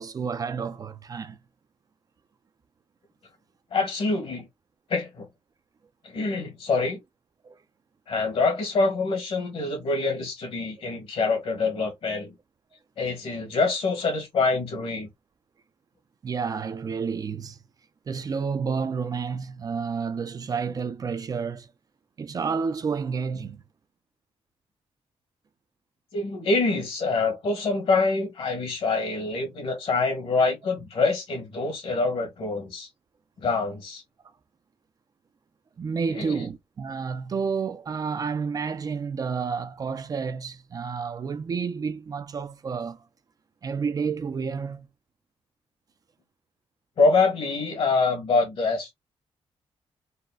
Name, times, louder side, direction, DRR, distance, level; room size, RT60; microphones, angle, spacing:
voice 1, 0.0-1.4 7.4-7.6 16.2-17.6 18.1-21.7 22.2-23.6 35.8-43.0 43.6-44.9, right 5 dB, 35° right, 0.4 m, -30 dB
voice 2, 3.7-4.5 4.9-5.3 6.0-7.0 8.1-12.3 13.0-15.1 26.1-32.9 33.4-34.0 36.1-36.4 47.0-48.9, left 3 dB, 65° left, 1.6 m, -25 dB
4.1 x 2.1 x 2.3 m
cardioid pair, 120°, 11 cm